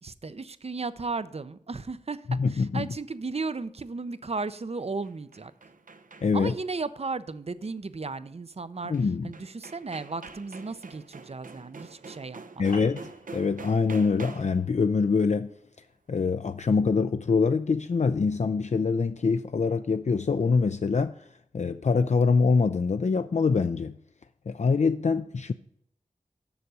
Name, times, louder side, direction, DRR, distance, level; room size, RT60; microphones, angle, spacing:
voice 1, 0.0-5.5 6.3-8.9 9.2-12.8, right 4 dB, 50° right, 0.6 m, -35 dB
voice 2, 2.3-2.9 6.2-6.5 8.9-9.3 12.6-15.5 16.1-21.2 21.5-23.9 24.5-25.5, left 4 dB, 60° left, 0.4 m, -24 dB
sound 1, 4.8-6.6 8.9-9.0 9.3-14.7, right 4 dB, 85° right, 0.7 m, -46 dB
sound 2, 12.7-17.5, left 2 dB, 75° left, 1.7 m, -50 dB
7.0 x 6.6 x 6.2 m
wide cardioid pair, 70°, 14 cm